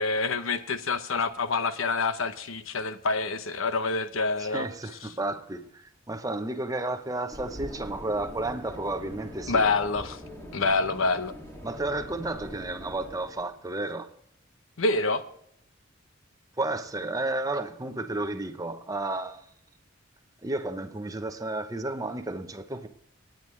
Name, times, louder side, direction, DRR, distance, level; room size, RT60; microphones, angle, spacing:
voice 1, 0.0-4.7 9.5-10.2 10.5-11.3 14.8-15.2, left 3 dB, 85° left, 0.9 m, -27 dB
voice 2, 4.4-9.6 11.6-14.1 16.6-19.4 20.4-22.9, right 2 dB, 20° right, 0.8 m, -32 dB
sound 1, 7.3-13.6, equal, 15° left, 2.3 m, -43 dB
18.5 x 9.2 x 3.2 m
head